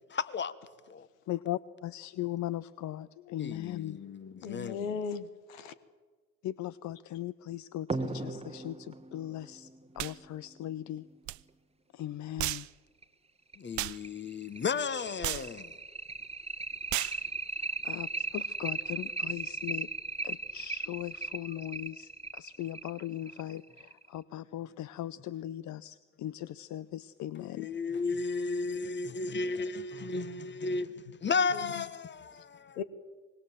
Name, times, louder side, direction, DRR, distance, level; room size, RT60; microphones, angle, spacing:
voice 1, 0.1-0.5 0.9-1.1 3.4-4.9 13.6-15.7 27.5-32.8, left 4 dB, 30° left, 1.4 m, -34 dB
voice 2, 1.3-4.0 6.4-9.7 10.0-11.1 11.9-12.7 17.8-19.9 20.2-27.7, left 13 dB, 50° left, 0.7 m, -39 dB
voice 3, 4.4-5.7 31.5-31.6 32.3-32.4 32.7-32.8, left 6 dB, 85° left, 1.3 m, -37 dB
sound 1, 7.9-11.1 12.5-12.6 13.0-13.1 13.5-13.6 14.0-24.1, right 3 dB, 15° right, 1.4 m, -37 dB
sound 2, 10.0-10.2 11.3-11.4 12.4-12.7 13.8-14.0 15.2-15.5 16.9-17.2, right 16 dB, 50° right, 0.6 m, -33 dB
25.0 x 20.5 x 7.7 m
hypercardioid pair, 65°, 38 cm